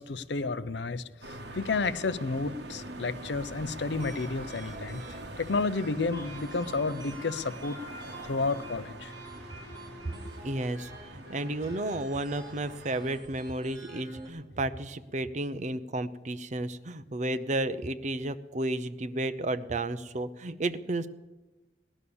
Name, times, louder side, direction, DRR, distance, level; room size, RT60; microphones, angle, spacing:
voice 1, 0.0-7.8 8.2-9.1, left 3 dB, 65° left, 15 dB, 0.6 m, -31 dB
sound 1, 1.2-13.2, right 1 dB, 60° right, 1.7 m, -44 dB
sound 2, 3.8-14.3, right 1 dB, 25° right, 4.3 m, -48 dB
voice 2, 10.4-21.1, right 2 dB, 40° right, 13 dB, 0.7 m, -32 dB
18.0 x 11.0 x 7.0 m, 1.2 s
head